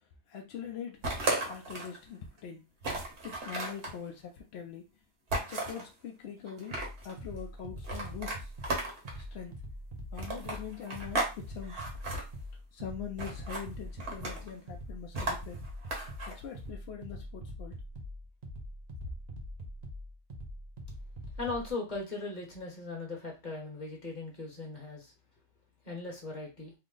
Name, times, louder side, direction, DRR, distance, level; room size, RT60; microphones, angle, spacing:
voice 1, 0.3-1.0 1.4-2.7 3.2-4.9 5.4-6.8 7.0-8.5 9.2-9.6 10.1-11.8 12.7-15.6 16.3-17.8, left 8 dB, 65° left, 0.7 m, -43 dB
sound 1, 1.0-2.0 2.4-2.5 2.8-3.9 5.3-5.9 6.5-7.1 7.8-9.2 10.2-11.3 11.6-12.2 13.2-13.6 14.0-14.5 15.1-16.3, right 2 dB, 60° right, 1.2 m, -34 dB
sound 2, 6.7-21.7, equal, 40° right, 0.7 m, -44 dB
voice 2, 21.4-25.1 25.8-26.7, left 3 dB, 40° left, 1.2 m, -38 dB
3.3 x 2.0 x 3.7 m
omnidirectional pair, 1.3 m